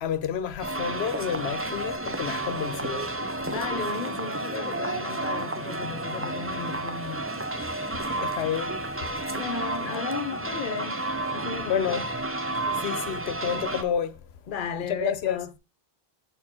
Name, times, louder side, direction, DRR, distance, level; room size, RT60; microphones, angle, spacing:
voice 1, 0.0-3.1 8.2-8.7 11.7-12.0 12.8-14.1 15.0-15.4, left 8 dB, 80° left, 0.9 m, -29 dB
sound 1, 0.6-13.8, right 2 dB, 15° right, 0.5 m, -31 dB
voice 2, 3.4-7.2 9.3-11.0 11.3-12.1 14.5-15.6, left 6 dB, 55° left, 0.8 m, -34 dB
7.1 x 4.3 x 4.3 m
omnidirectional pair, 1.1 m